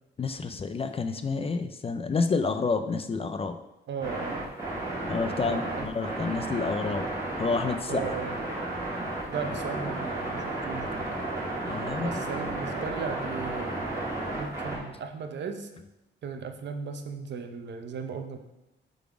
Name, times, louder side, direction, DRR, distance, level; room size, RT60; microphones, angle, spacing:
voice 1, 0.2-3.6 5.1-7.1 7.4-8.2 11.6-12.2 12.6-12.8, left 4 dB, 30° left, 9 dB, 0.3 m, -29 dB
voice 2, 3.9-4.5 5.4-5.9 7.9-8.3 9.3-11.1 12.0-13.9 14.3-15.7 16.2-18.4, right 5 dB, 65° right, 6 dB, 0.7 m, -36 dB
sound 1, 4.0-14.8, right 2 dB, 15° right, 2.2 m, -33 dB
6.9 x 4.0 x 4.8 m, 0.96 s
wide cardioid pair, 155°, 20 cm